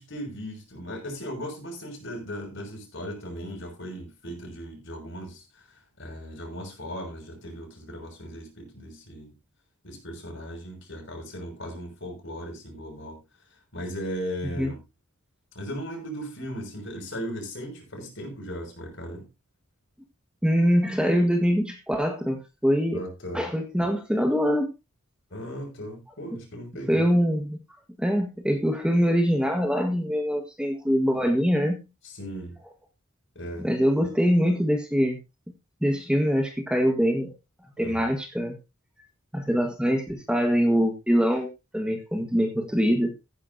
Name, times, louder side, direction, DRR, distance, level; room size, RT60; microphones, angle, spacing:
voice 1, 0.0-5.7 6.0-9.3 9.8-13.2 13.7-14.8 15.5-19.3 22.9-23.5 25.3-27.1 32.0-32.6 33.3-33.7 37.8-38.1, equal, 60° left, 6.2 m, -37 dB
voice 2, 20.4-23.0 23.3-24.7 26.9-27.6 28.0-31.8 33.6-35.2 35.8-37.3 37.8-38.6 39.3-43.1, equal, 5° right, 1.6 m, -23 dB
15.5 x 9.9 x 2.8 m
head